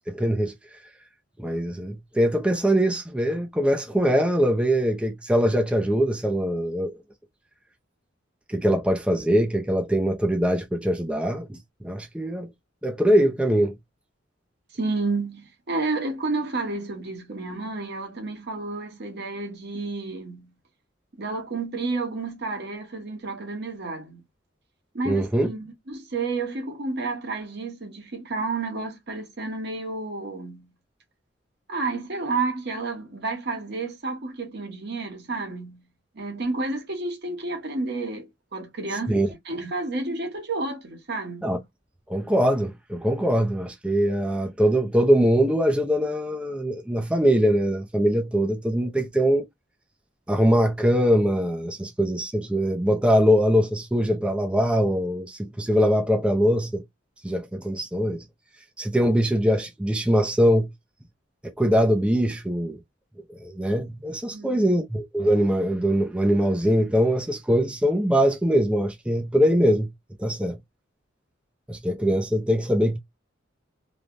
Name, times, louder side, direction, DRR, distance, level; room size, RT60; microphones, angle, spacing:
voice 1, 0.1-0.5 1.4-6.9 8.5-12.5 12.8-13.7 25.1-25.5 39.1-39.3 41.4-41.6 42.1-49.5 50.3-56.8 57.2-58.2 58.8-60.7 61.6-62.8 63.4-69.9 70.2-70.6 71.7-73.0, equal, 5° right, 0.4 m, -22 dB
voice 2, 14.7-20.5 21.1-24.2 24.9-30.7 31.7-35.8 36.1-41.5 64.3-64.7, right 3 dB, 60° right, 1.1 m, -31 dB
3.2 x 2.1 x 2.5 m
head